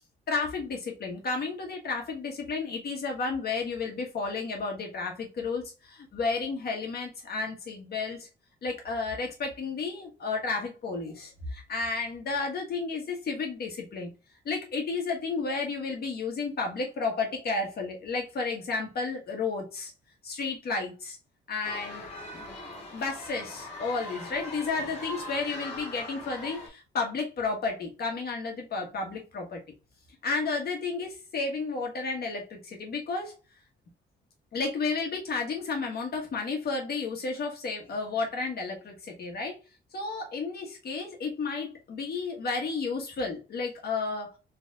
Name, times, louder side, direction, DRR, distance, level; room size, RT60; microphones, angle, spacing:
voice 1, 0.3-8.3 8.6-14.1 14.4-19.9 20.2-21.2 21.5-22.0 22.3-22.6 22.9-29.6 30.2-33.3 34.5-39.6 39.9-44.3, left 4 dB, 50° left, 1.4 m, -32 dB
sound 1, 21.6-26.7, left 1 dB, 30° left, 1.8 m, -41 dB
4.1 x 3.4 x 2.4 m
cardioid pair, 90°, 20 cm